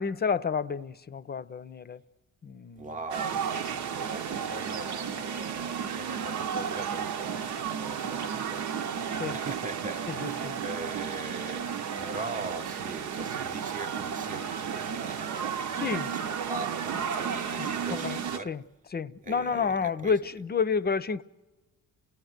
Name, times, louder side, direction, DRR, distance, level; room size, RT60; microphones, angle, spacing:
voice 1, 0.0-2.0 2.4-3.0 9.1-9.4 10.1-10.6 15.8-16.1 17.6-18.6 18.9-21.2, left 5 dB, 35° left, 0.6 m, -30 dB
voice 2, 2.7-8.7 9.2-18.5 19.2-20.1, right 3 dB, 25° right, 0.9 m, -41 dB
sound 1, 3.1-18.4, right 7 dB, 75° right, 1.0 m, -33 dB
29.0 x 17.0 x 8.0 m
cardioid pair, 90°, 30 cm